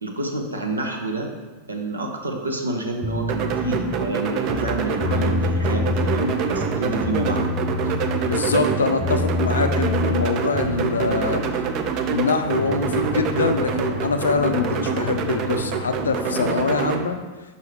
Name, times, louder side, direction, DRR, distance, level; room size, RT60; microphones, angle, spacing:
voice 1, 0.0-1.3 1.7-7.5, right 2 dB, 75° right, 3 dB, 0.7 m, -28 dB
sound 1, 3.0-4.1 4.4-6.2 6.5-8.2 8.5-10.9, left 3 dB, 15° left, 0.6 m, -27 dB
sound 2, 3.3-17.0, right 7 dB, 40° right, 0.5 m, -26 dB
sound 3, 5.0-16.8, left 2 dB, 60° right, 1.2 m, -33 dB
voice 2, 8.2-11.4 12.1-17.2, left 4 dB, 70° left, 8 dB, 0.4 m, -24 dB
5.7 x 5.4 x 3.1 m, 1.3 s
figure-of-eight pair, 90°, 0 cm